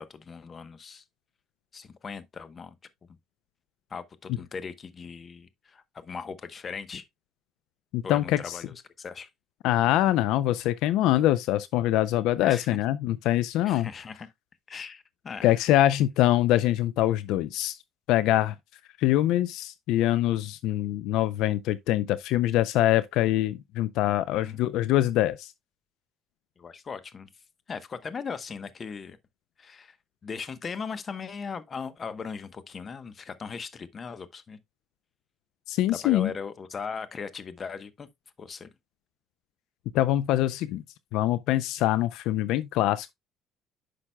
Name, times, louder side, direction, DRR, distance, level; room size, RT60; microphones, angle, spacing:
voice 1, 0.1-1.0 1.7-2.8 3.9-7.0 8.0-9.3 12.4-12.8 13.6-14.3 14.7-15.5 24.3-24.7 26.6-27.3 27.7-29.2 29.6-30.0 30.2-34.6 35.9-38.1 38.4-38.7, left 5 dB, 30° left, 0.9 m, -38 dB
voice 2, 7.9-8.6 9.6-13.9 15.4-17.8 18.1-18.5 19.0-25.5 35.7-36.3 39.9-40.8 41.1-43.1, left 14 dB, 75° left, 0.4 m, -24 dB
10.0 x 5.9 x 2.2 m
cardioid pair, 125°, 0 cm